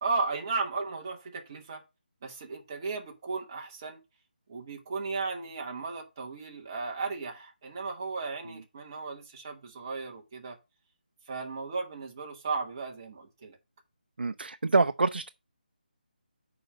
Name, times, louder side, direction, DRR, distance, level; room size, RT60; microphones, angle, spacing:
voice 1, 0.0-1.8 2.2-4.0 4.5-10.6 11.3-13.6, right 4 dB, 20° right, 1.4 m, -35 dB
voice 2, 14.2-15.3, right 3 dB, 80° right, 0.6 m, -26 dB
6.7 x 5.1 x 5.4 m
hypercardioid pair, 175°, 5 cm